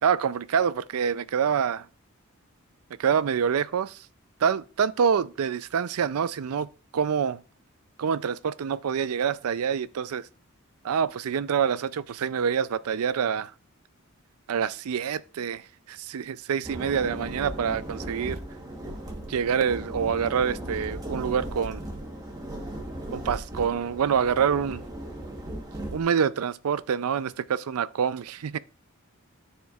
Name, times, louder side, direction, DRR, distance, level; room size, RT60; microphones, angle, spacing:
voice 1, 0.0-1.9 3.0-4.1 4.4-7.4 8.0-10.3 10.8-13.5 14.5-18.4 19.3-21.8 23.1-24.8 25.9-28.6, right 7 dB, 85° right, 0.4 m, -26 dB
sound 1, 16.6-26.0, right 1 dB, 15° right, 1.1 m, -37 dB
12.0 x 4.4 x 2.4 m
head